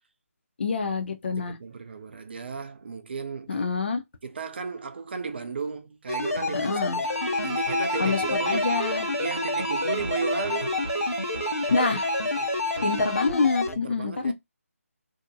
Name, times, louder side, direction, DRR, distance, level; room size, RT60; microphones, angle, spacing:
voice 1, 0.6-1.6 3.5-4.0 6.5-7.0 8.0-9.1 11.7-12.1 12.8-14.3, left 4 dB, 45° left, 0.5 m, -26 dB
voice 2, 1.5-3.7 4.2-8.8 9.2-10.8 12.4-12.5 13.7-14.3, right 5 dB, 45° right, 0.4 m, -35 dB
sound 1, 6.1-13.7, left 2 dB, 85° left, 0.7 m, -28 dB
Bowed string instrument, 7.0-13.4, right 3 dB, 25° right, 0.9 m, -34 dB
2.6 x 2.1 x 2.6 m
figure-of-eight pair, 155°, 8 cm